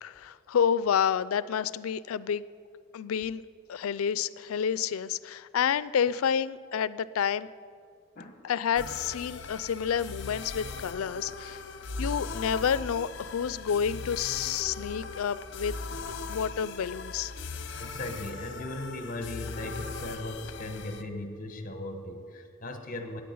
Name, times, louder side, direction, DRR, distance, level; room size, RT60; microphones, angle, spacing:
voice 1, 0.0-2.4 2.9-3.4 3.7-7.5 8.4-11.6 12.0-15.7 16.3-17.3, left 7 dB, 90° left, 17 dB, 0.4 m, -29 dB
sound 1, 8.8-21.0, left 4 dB, 55° left, 0.7 m, -39 dB
voice 2, 17.8-23.2, left 1 dB, 40° left, 6 dB, 1.0 m, -38 dB
9.3 x 9.1 x 9.3 m, 2.2 s
head